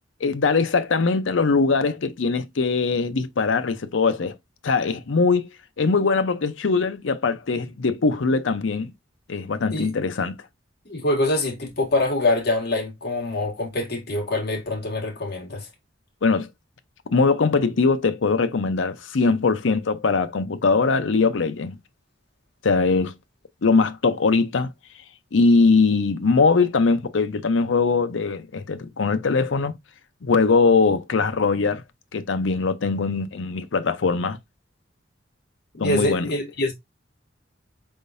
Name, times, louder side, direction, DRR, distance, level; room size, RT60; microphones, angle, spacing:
voice 1, 0.2-4.3 4.6-5.5 5.8-8.9 9.3-10.3 16.2-16.5 17.1-21.8 22.6-23.1 23.6-24.7 25.3-29.7 30.2-31.8 32.1-34.4 35.8-36.3, left 4 dB, 85° left, 0.6 m, -21 dB
voice 2, 10.9-15.7 35.7-36.7, left 2 dB, 60° left, 1.8 m, -25 dB
4.5 x 3.6 x 2.5 m
head